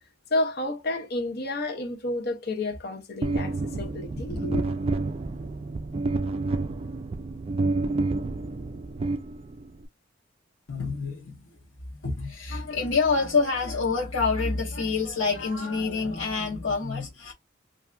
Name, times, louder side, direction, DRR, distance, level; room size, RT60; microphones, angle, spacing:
voice 1, 0.3-4.6, left 2 dB, 55° left, 0.8 m, -30 dB
sound 1, 3.2-9.8, right 3 dB, 30° right, 0.4 m, -29 dB
voice 2, 10.7-11.5 11.9-17.3, left 4 dB, 85° left, 1.0 m, -27 dB
3.2 x 2.5 x 2.4 m
head